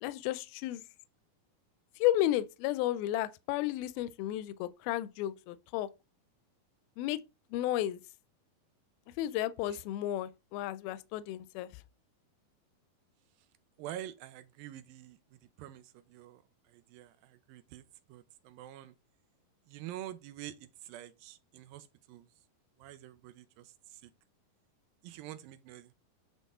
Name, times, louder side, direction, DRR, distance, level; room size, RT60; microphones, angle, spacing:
voice 1, 0.0-0.8 2.0-5.9 7.0-7.2 7.5-8.0 9.2-11.8, left 13 dB, 85° left, 2.4 m, -33 dB
voice 2, 13.8-16.4 16.7-18.9 19.7-22.3 22.8-24.1 25.0-25.9, right 12 dB, 80° right, 2.4 m, -47 dB
9.2 x 4.1 x 3.6 m
omnidirectional pair, 4.3 m